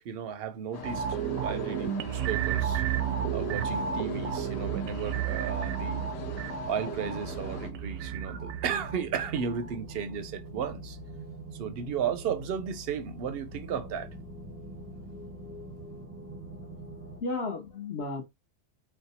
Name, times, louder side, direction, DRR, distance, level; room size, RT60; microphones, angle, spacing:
voice 1, 0.0-2.8 3.3-6.1 6.7-11.0 11.5-14.1, right 7 dB, 60° right, 0.7 m, -34 dB
sound 1, 0.7-7.7, left 6 dB, 75° left, 1.2 m, -42 dB
sound 2, 0.8-10.1 10.5-10.6, right 10 dB, 85° right, 1.1 m, -33 dB
sound 3, 2.5-17.2, right 1 dB, 15° right, 0.7 m, -44 dB
voice 2, 16.6-18.2, left 3 dB, 55° left, 1.1 m, -35 dB
4.4 x 2.2 x 4.1 m
omnidirectional pair, 1.4 m